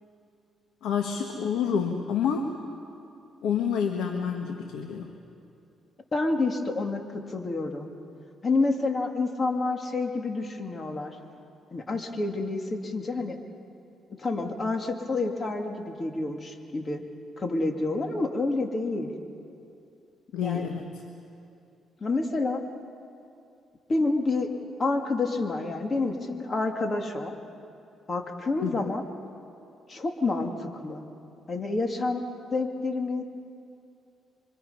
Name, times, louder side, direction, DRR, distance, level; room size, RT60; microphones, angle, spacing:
voice 1, 0.8-2.5 3.4-5.1 20.3-20.9 28.6-28.7, left 7 dB, 85° left, 4 dB, 1.4 m, -28 dB
voice 2, 6.1-7.9 8.4-11.2 11.7-13.4 14.1-17.0 17.4-19.1 20.4-20.7 22.0-22.6 23.9-24.5 24.8-27.3 28.1-29.0 29.9-31.0 31.5-32.2 32.5-33.2, left 3 dB, 35° left, 3 dB, 2.3 m, -28 dB
26.0 x 24.0 x 5.6 m, 2.6 s
cardioid pair, 90°, 0 cm